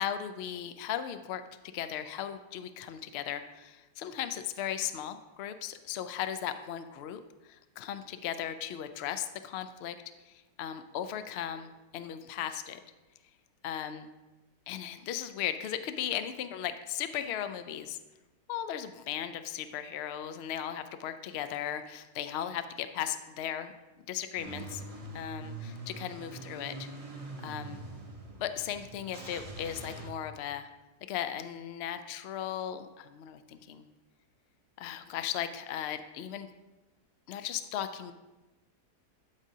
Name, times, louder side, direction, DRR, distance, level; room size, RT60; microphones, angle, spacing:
voice 1, 0.0-1.4 1.7-7.2 7.5-9.9 10.3-12.8 13.6-14.1 14.7-18.0 18.5-23.7 24.1-24.8 25.1-26.9 27.4-27.8 28.4-30.7 31.1-33.8 34.8-36.5 37.3-38.1, left 10 dB, 80° left, 9 dB, 0.5 m, -37 dB
Car / Engine starting / Idling, 24.4-30.1, right 2 dB, 35° right, 0.6 m, -44 dB
12.5 x 5.0 x 2.7 m, 1.1 s
omnidirectional pair, 1.7 m